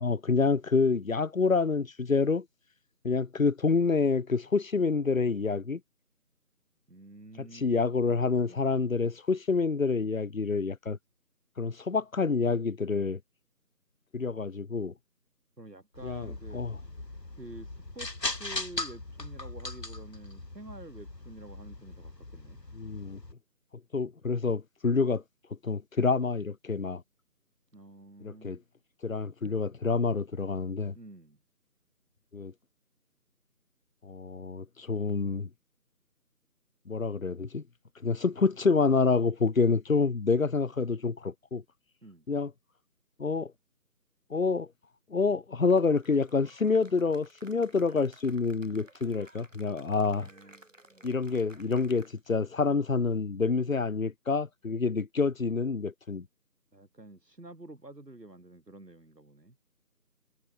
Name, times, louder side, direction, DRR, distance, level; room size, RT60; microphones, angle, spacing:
voice 1, 0.0-2.5 3.0-5.8 7.4-11.0 11.6-13.2 14.1-14.9 16.0-16.7 22.8-23.2 23.9-25.2 25.6-27.0 28.2-28.6 29.0-30.9 32.3-32.5 34.0-35.5 36.9-37.6 38.0-41.6 42.3-42.5 43.2-43.5 44.3-44.7 45.1-50.3 51.0-56.3, left 4 dB, 60° left, 0.5 m, -27 dB
voice 2, 6.9-7.8 15.6-17.0 17.4-22.6 27.7-28.7 30.9-31.4 42.0-42.3 50.1-51.1 56.7-59.6, right 2 dB, 80° right, 5.7 m, -49 dB
sound 1, 15.9-23.3, left 2 dB, 85° left, 3.5 m, -39 dB
Cheering / Applause, 45.7-52.4, right 1 dB, 50° right, 7.7 m, -57 dB
figure-of-eight pair, 180°, 48 cm